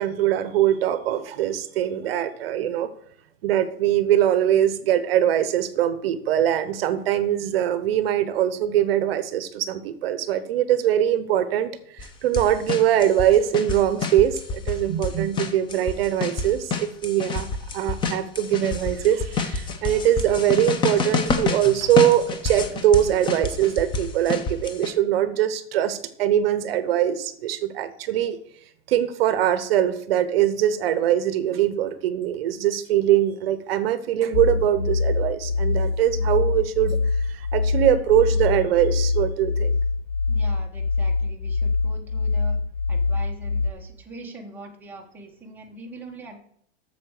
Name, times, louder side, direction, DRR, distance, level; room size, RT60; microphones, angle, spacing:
voice 1, 0.0-2.9 3.4-17.5 17.7-28.4 28.9-37.0 37.3-39.7, right 11 dB, 65° right, 13 dB, 1.0 m, -22 dB
sound 1, 12.0-12.1 12.3-14.8 15.0-24.9, left 4 dB, 15° left, 0.7 m, -28 dB
sound 2, 34.3-43.7, left 4 dB, 85° left, 0.9 m, -24 dB
voice 2, 40.3-42.6 42.9-46.4, right 2 dB, 5° right, -1 dB, 1.2 m, -42 dB
8.5 x 6.9 x 6.5 m, 0.67 s
supercardioid pair, 165°, 32 cm